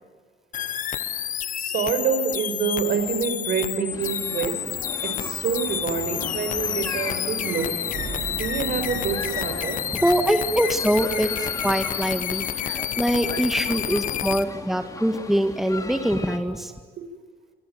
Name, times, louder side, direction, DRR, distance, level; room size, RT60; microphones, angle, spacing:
sound 1, 0.5-14.4, left 10 dB, 50° left, 1.1 m, -29 dB
voice 1, 1.6-4.5 5.0-7.7 8.3-9.8, right 7 dB, 60° right, 8 dB, 5.8 m, -27 dB
sound 2, 3.9-16.4, left 3 dB, 20° left, 2.9 m, -38 dB
sound 3, 7.9-12.7, right 7 dB, 45° right, 2.0 m, -39 dB
voice 2, 9.9-16.7, right 1 dB, ahead, 6 dB, 1.9 m, -24 dB
26.5 x 23.5 x 9.4 m, 1.5 s
cardioid pair, 110°, 17 cm